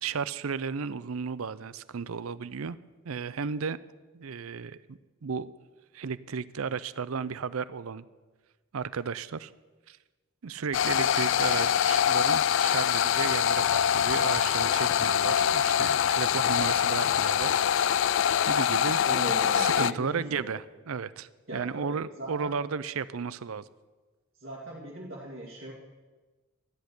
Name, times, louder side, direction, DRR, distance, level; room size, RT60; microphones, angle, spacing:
voice 1, 0.0-2.8 3.0-3.8 4.1-5.5 5.9-8.1 8.7-9.5 9.9-10.0 10.4-17.6 18.4-19.0 19.5-23.6, right 5 dB, 80° right, 17 dB, 0.5 m, -34 dB
sound 1, 10.7-19.9, left 9 dB, 60° left, 0.3 m, -24 dB
voice 2, 19.1-20.5 21.5-22.5 24.4-25.7, right 1 dB, 50° right, -6 dB, 2.4 m, -38 dB
13.0 x 6.6 x 9.6 m, 1.3 s
head